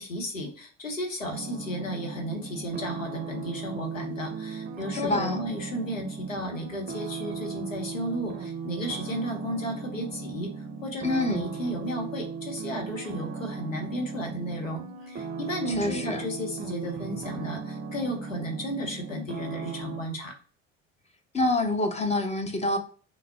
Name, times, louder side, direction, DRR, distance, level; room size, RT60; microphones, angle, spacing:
voice 1, 0.0-10.5 10.8-20.3, equal, 90° left, 3 dB, 0.8 m, -33 dB
sound 1, 1.3-20.0, right 5 dB, 25° right, 0.5 m, -37 dB
voice 2, 4.9-5.4 11.0-11.4 15.8-16.3 21.3-22.8, left 2 dB, 20° left, 6 dB, 0.5 m, -26 dB
3.2 x 2.1 x 3.4 m, 0.40 s
figure-of-eight pair, 60°, 38 cm